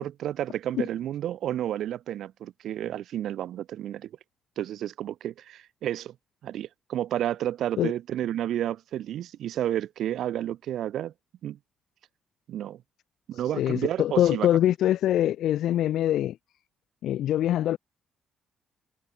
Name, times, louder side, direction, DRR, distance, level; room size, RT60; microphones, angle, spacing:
voice 1, 0.0-4.1 4.6-6.1 6.4-11.1 11.4-11.6 12.5-12.8 13.3-14.5, right 11 dB, 75° right, 2.4 m, -31 dB
voice 2, 13.5-16.4 17.0-17.8, left 12 dB, 80° left, 1.1 m, -24 dB
cardioid pair, 90°, 0 cm